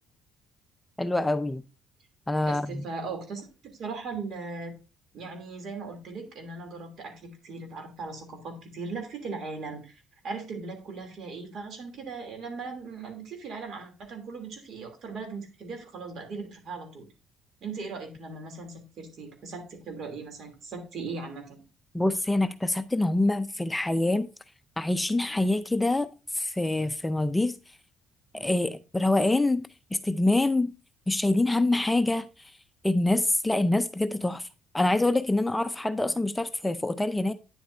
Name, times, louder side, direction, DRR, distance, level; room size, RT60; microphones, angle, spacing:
voice 1, 1.0-1.6 2.3-2.8 21.9-24.3 24.8-26.1 26.3-27.6 28.3-30.7 31.1-32.5 32.8-34.5 34.7-37.3, left 2 dB, 10° left, 0.5 m, -25 dB
voice 2, 2.5-4.7 5.1-9.9 10.2-17.0 17.6-21.6, right 4 dB, 60° right, 2.9 m, -38 dB
9.4 x 7.8 x 2.6 m
cardioid pair, 95°, 0 cm